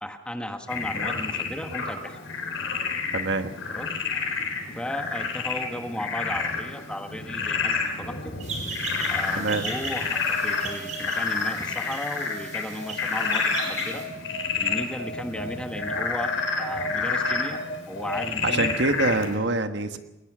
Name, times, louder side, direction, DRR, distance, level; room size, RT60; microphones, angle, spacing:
voice 1, 0.0-2.2 3.7-3.9 4.7-8.3 9.1-10.2 10.4-14.0 14.6-17.6 17.9-18.7, left 1 dB, 5° left, 5 dB, 1.4 m, -35 dB
Frog, 0.7-19.4, left 4 dB, 90° left, 4.1 m, -29 dB
voice 2, 3.1-3.5 9.3-9.7 18.4-20.0, right 2 dB, 60° right, 7 dB, 1.4 m, -25 dB
sound 1, 8.4-14.0, right 3 dB, 40° right, 5.2 m, -37 dB
22.0 x 19.0 x 6.2 m, 0.99 s
head